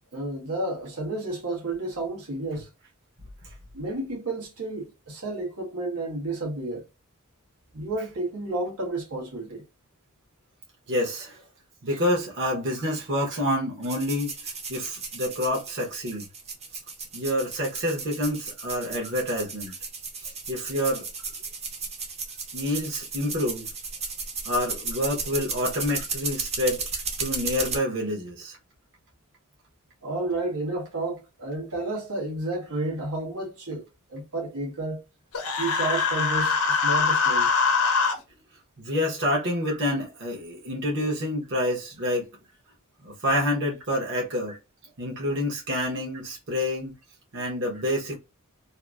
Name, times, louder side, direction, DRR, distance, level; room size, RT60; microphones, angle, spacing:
voice 1, 0.1-2.7 3.7-6.8 7.7-9.6 11.9-12.0 30.0-33.8 34.1-35.0 35.6-37.5 39.7-39.8 44.5-44.6, right 2 dB, 90° right, 1.2 m, -31 dB
voice 2, 10.9-11.4 11.8-16.3 17.1-19.7 20.2-21.1 22.5-23.7 24.4-26.8 27.2-28.6 38.8-42.3 43.0-44.6 45.0-46.9 47.3-48.1, left 1 dB, 55° right, 1.0 m, -28 dB
sound 1, 13.8-27.8, right 4 dB, 30° right, 0.6 m, -35 dB
Human voice, 35.3-38.1, left 5 dB, 80° left, 0.7 m, -23 dB
2.8 x 2.5 x 2.3 m
head